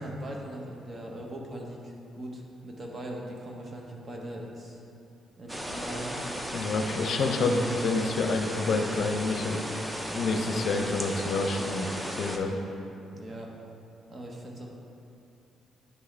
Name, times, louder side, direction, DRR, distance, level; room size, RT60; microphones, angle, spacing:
voice 1, 0.0-4.8 5.4-6.2 13.1-13.5 14.1-14.7, right 1 dB, 40° right, 0 dB, 1.0 m, -40 dB
sound 1, 5.5-12.4, equal, 10° right, 0.6 m, -35 dB
voice 2, 6.5-9.6 10.1-12.6, left 3 dB, 65° left, 4 dB, 0.5 m, -28 dB
9.7 x 3.5 x 3.3 m, 2.7 s
cardioid pair, 90°, 0 cm